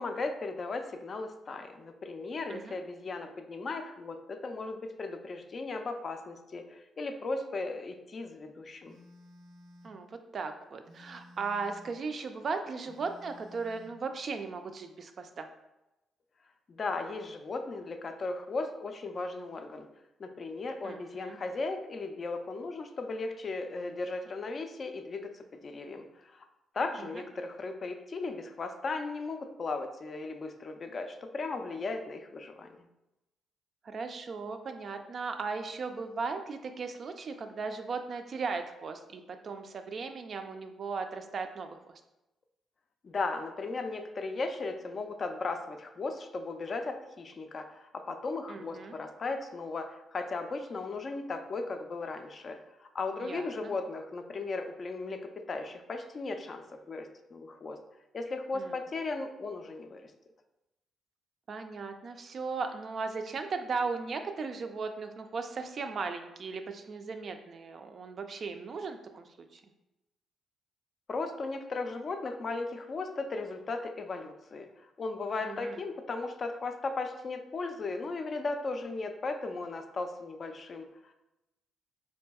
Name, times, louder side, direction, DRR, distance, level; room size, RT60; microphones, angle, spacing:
voice 1, 0.0-9.0 16.7-19.9 20.2-26.5 26.7-32.9 43.0-57.8 58.1-60.1 71.1-81.1, left 3 dB, 40° left, 5 dB, 0.3 m, -36 dB
Telephone, 8.8-10.0 10.8-12.0 12.8-14.0, left 1 dB, 85° right, 0.7 m, -54 dB
voice 2, 9.8-15.5 20.8-21.4 27.0-27.1 33.8-42.0 48.5-48.9 53.2-53.7 58.5-58.8 61.5-69.6 75.4-75.8, right 4 dB, 50° right, 7 dB, 0.3 m, -37 dB
3.9 x 2.6 x 2.2 m, 0.96 s
cardioid pair, 90°, 0 cm